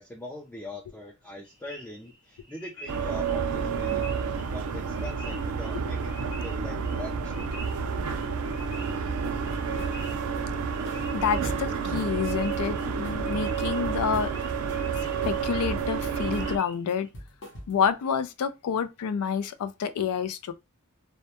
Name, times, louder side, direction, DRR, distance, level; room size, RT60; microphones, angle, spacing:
voice 1, 0.0-4.1 4.5-6.0 6.4-7.5, left 1 dB, 5° left, 0.4 m, -42 dB
sound 1, 1.4-17.1, equal, 25° left, 0.9 m, -48 dB
sound 2, 2.9-16.6, right 5 dB, 85° right, 0.4 m, -30 dB
sound 3, 9.2-10.0 10.3-11.7 12.0-12.2 12.5-14.4 14.7-16.0 16.3-16.6 16.9-17.9, equal, 55° left, 0.8 m, -43 dB
voice 2, 11.1-14.3 15.3-17.1 17.7-20.5, left 7 dB, 80° left, 0.3 m, -28 dB
2.1 x 2.1 x 2.8 m
head